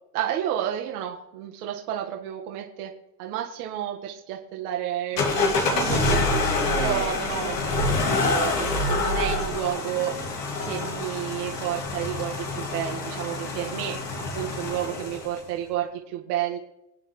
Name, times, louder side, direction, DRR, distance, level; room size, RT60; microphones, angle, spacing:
voice 1, 0.1-2.9 3.2-6.1 6.4-10.1 10.6-14.0 14.3-16.6, right 11 dB, 65° right, 1 dB, 1.8 m, -31 dB
sound 1, 5.2-15.4, left 2 dB, 90° left, 2.5 m, -26 dB
26.5 x 9.0 x 3.2 m, 0.92 s
hypercardioid pair, 85°, 47 cm